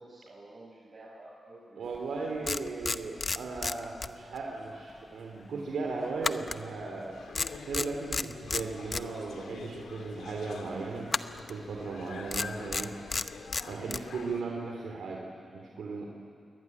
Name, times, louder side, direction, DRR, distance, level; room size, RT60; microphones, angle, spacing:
voice 1, 0.0-2.9, right 2 dB, 45° right, -5 dB, 6.0 m, -51 dB
voice 2, 1.8-11.1 11.5-12.9 13.6-16.1, right 4 dB, 85° right, 0 dB, 2.9 m, -37 dB
sound 1, 1.9-2.1 2.4-4.5 4.8-5.0 6.2-7.1 7.3-9.1 11.1-11.6 12.3-14.1, left 4 dB, 40° left, 0.9 m, -32 dB
sound 2, 7.1-14.4, left 5 dB, 85° left, 2.4 m, -46 dB
28.0 x 22.0 x 9.6 m, 2.5 s
cardioid pair, 75°, 0 cm